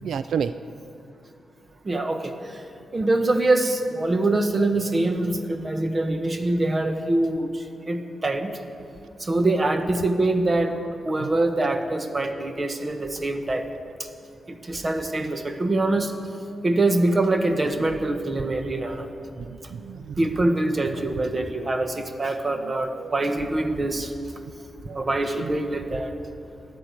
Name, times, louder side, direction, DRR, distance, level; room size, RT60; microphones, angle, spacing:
voice 1, 0.0-0.5 11.2-11.3 15.2-15.4 19.4-20.3 20.9-21.0 22.5-23.1 24.9-25.7, right 7 dB, 75° right, 12 dB, 0.4 m, -33 dB
voice 2, 1.8-2.6 2.9-8.5 9.2-10.8 11.0-13.7 14.5-16.1 16.6-19.1 20.2-24.1 24.9-26.1, right 2 dB, 25° right, 7 dB, 1.1 m, -24 dB
13.0 x 9.7 x 9.1 m, 2.6 s
wide cardioid pair, 145°, 0 cm